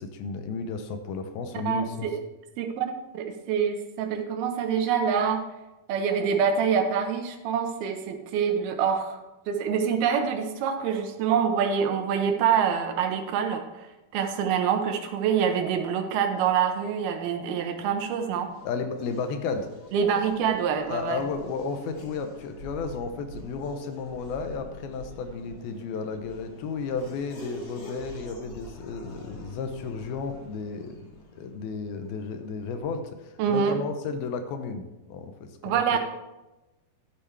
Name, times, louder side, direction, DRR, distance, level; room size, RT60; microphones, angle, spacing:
voice 1, 0.0-2.1 18.6-19.7 20.9-36.0, left 4 dB, 80° left, 7 dB, 2.7 m, -33 dB
voice 2, 1.7-2.1 2.6-2.9 3.1-5.4 5.9-9.2 9.5-13.9 14.1-18.5 19.9-21.2 33.4-33.8 35.6-36.0, right 7 dB, 80° right, 5 dB, 2.8 m, -26 dB
Race car auto racing / Accelerating revving vroom, 17.5-33.1, equal, 45° left, 3.0 m, -46 dB
12.0 x 8.0 x 3.3 m, 1.0 s
omnidirectional pair, 4.4 m